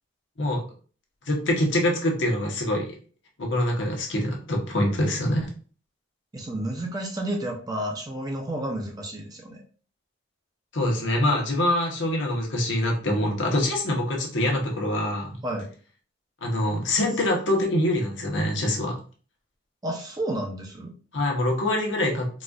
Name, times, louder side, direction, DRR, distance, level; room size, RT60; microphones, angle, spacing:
voice 1, 1.3-3.0 3.4-5.5 10.7-15.3 16.4-19.0 21.1-22.3, left 1 dB, 65° left, 0 dB, 1.0 m, -24 dB
voice 2, 6.3-9.6 15.4-15.7 19.8-20.9, right 1 dB, 20° right, 1 dB, 0.5 m, -31 dB
4.0 x 2.4 x 2.4 m, 0.39 s
head